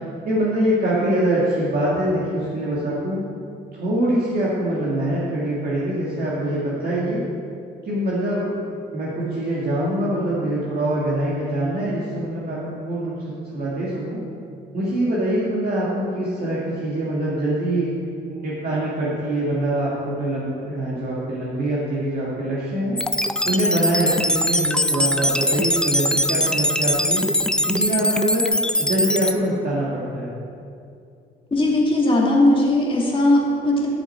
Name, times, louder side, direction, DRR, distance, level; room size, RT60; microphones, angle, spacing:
voice 1, 0.2-3.2 3.7-7.2 7.8-14.2 14.7-17.9 18.3-23.0 23.5-27.2 27.6-28.5 28.8-30.3, right 1 dB, 50° right, -7 dB, 2.0 m, -24 dB
sound 1, 23.0-29.3, left 1 dB, 5° left, 0.5 m, -21 dB
voice 2, 31.5-33.9, left 1 dB, 25° left, -3 dB, 2.4 m, -18 dB
12.5 x 6.6 x 4.5 m, 2.5 s
cardioid pair, 90°, 20 cm